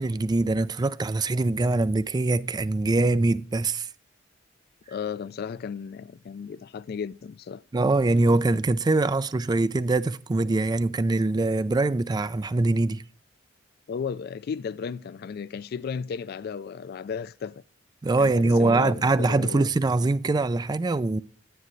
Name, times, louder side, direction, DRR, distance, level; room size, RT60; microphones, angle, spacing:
voice 1, 0.0-3.9 7.7-13.0 18.0-21.2, right 2 dB, 20° right, 0.3 m, -23 dB
voice 2, 4.9-7.6 13.9-17.6 18.2-19.6, left 6 dB, 55° left, 0.3 m, -34 dB
9.9 x 9.0 x 3.1 m
head